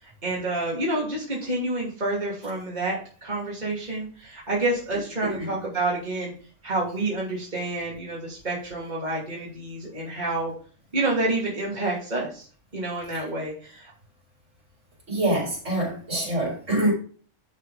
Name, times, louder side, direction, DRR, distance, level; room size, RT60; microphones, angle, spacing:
voice 1, 0.0-6.3 6.6-10.5 10.9-12.5 12.7-13.9, right 2 dB, 35° right, 2.8 m, -28 dB
voice 2, 5.2-5.6 13.1-13.2 15.1-16.9, right 1 dB, 65° right, 4.7 m, -25 dB
11.0 x 4.6 x 5.0 m
omnidirectional pair, 1.4 m